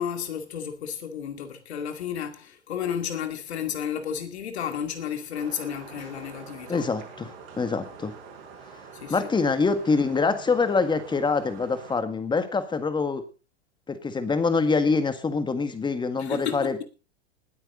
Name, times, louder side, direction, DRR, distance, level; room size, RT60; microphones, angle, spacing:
voice 1, 0.0-6.9 8.9-9.2 16.2-16.8, left 8 dB, 70° left, 2.4 m, -32 dB
sound 1, 5.3-12.0, right 5 dB, 55° right, 6.1 m, -45 dB
voice 2, 6.7-8.1 9.1-13.2 13.9-16.8, left 4 dB, 15° left, 1.8 m, -25 dB
19.5 x 8.9 x 3.9 m
hypercardioid pair, 100°, 34 cm